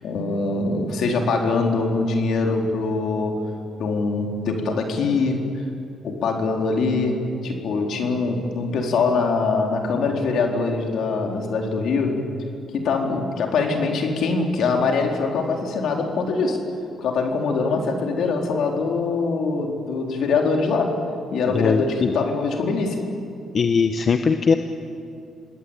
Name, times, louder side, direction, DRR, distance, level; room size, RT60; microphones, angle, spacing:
voice 1, 0.0-3.3 3.8-5.4 6.0-12.3 12.7-16.6 17.0-21.0 21.3-23.0, left 4 dB, 70° left, 2 dB, 4.1 m, -23 dB
voice 2, 21.5-22.1 23.5-24.5, left 5 dB, 45° left, 7 dB, 1.2 m, -20 dB
27.5 x 20.0 x 9.0 m, 2.5 s
cardioid pair, 90°, 0 cm